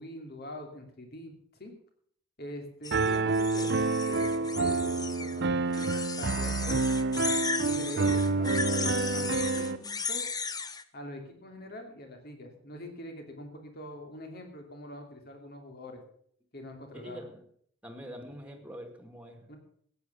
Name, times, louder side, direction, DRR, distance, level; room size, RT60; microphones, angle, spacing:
voice 1, 0.0-1.3 1.6-1.7 2.4-7.1 7.7-10.2 10.9-16.0 16.5-17.2 19.5-19.6, left 1 dB, 50° left, 4 dB, 2.9 m, -44 dB
sound 1, 2.8-5.4 5.7-10.8, left 5 dB, 20° left, 0.7 m, -36 dB
Piano, 2.9-9.8, right 3 dB, 55° right, 0.6 m, -28 dB
voice 2, 17.0-17.4 17.8-19.6, equal, 5° right, 4 dB, 2.1 m, -44 dB
14.5 x 9.2 x 7.0 m, 0.63 s
head